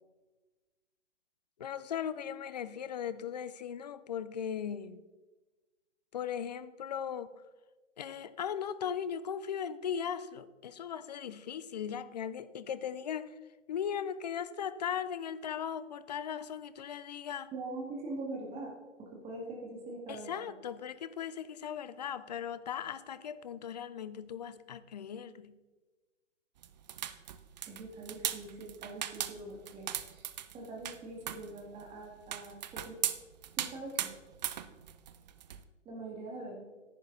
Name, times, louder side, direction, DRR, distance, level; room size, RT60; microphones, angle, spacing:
voice 1, 1.6-5.0 6.1-7.3 8.0-13.3 13.7-17.5 20.1-25.6, left 8 dB, 35° left, 15 dB, 0.4 m, -38 dB
voice 2, 17.5-18.7 19.0-20.3 27.6-30.2 30.5-33.0 33.6-34.1 35.9-36.6, right 2 dB, 15° right, -2 dB, 2.1 m, -43 dB
sound 1, 26.6-35.6, right 11 dB, 35° right, 0.5 m, -38 dB
11.0 x 9.2 x 3.9 m, 1.2 s
figure-of-eight pair, 130°, 37 cm